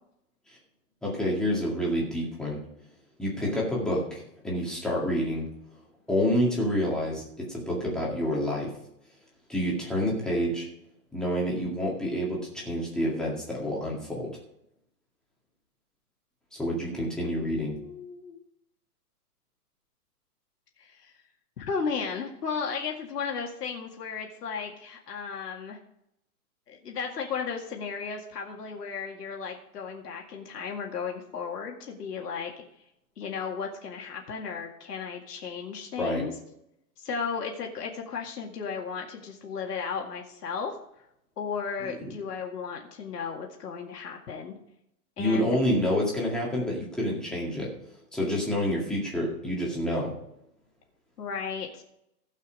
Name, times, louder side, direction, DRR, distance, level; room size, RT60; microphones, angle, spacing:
voice 1, 1.0-2.6 3.2-5.5 6.1-8.7 9.5-10.7 11.1-14.3 16.6-17.7 36.0-36.2 42.0-42.1 45.2-47.7 48.1-50.1, equal, ahead, -4 dB, 2.0 m, -28 dB
voice 2, 17.4-18.4 20.8-21.2 21.6-25.8 26.7-32.5 33.2-36.3 37.0-41.1 41.4-44.5 45.2-45.5 51.2-51.8, left 6 dB, 90° left, 0 dB, 2.2 m, -35 dB
16.0 x 5.7 x 5.2 m, 0.78 s
hypercardioid pair, 165°, 46 cm